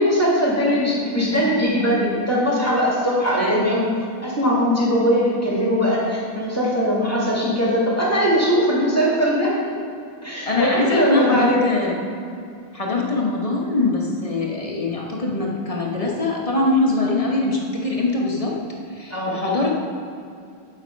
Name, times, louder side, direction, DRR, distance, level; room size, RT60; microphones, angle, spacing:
voice 1, 0.0-3.8 4.2-9.8 10.2-11.7 19.1-19.4, equal, 5° left, -6 dB, 2.2 m, -20 dB
voice 2, 10.5-12.0 12.7-18.5 18.9-19.7, left 2 dB, 25° left, -2 dB, 0.8 m, -22 dB
8.7 x 8.0 x 5.3 m, 2.5 s
omnidirectional pair, 2.4 m